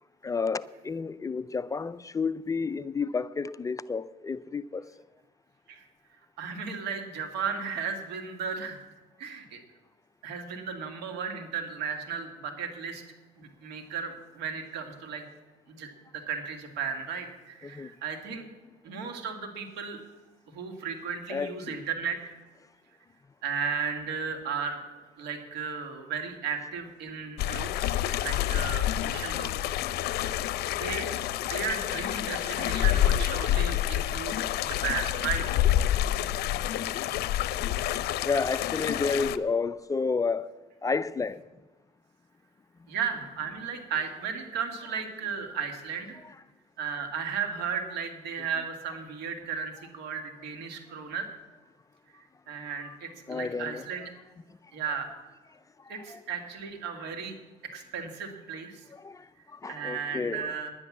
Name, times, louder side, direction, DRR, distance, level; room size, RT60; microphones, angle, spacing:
voice 1, 0.2-4.9 17.6-17.9 21.3-21.8 38.2-40.5 40.8-41.4 53.3-53.8 56.1-56.2 59.0-59.2 59.6-60.5, left 4 dB, 20° left, 0.4 m, -30 dB
voice 2, 6.4-8.8 9.2-9.6 10.2-13.0 13.4-15.2 15.7-18.4 18.8-20.0 20.5-22.4 23.4-24.8 25.2-29.8 30.7-35.4 42.9-46.2 46.8-51.3 52.5-54.1 54.7-55.1 55.9-57.4 57.7-58.8 59.7-60.7, right 6 dB, 85° right, 2.2 m, -35 dB
sound 1, 27.4-39.4, left 12 dB, 70° left, 0.6 m, -28 dB
10.5 x 9.9 x 7.3 m
cardioid pair, 110°, 17 cm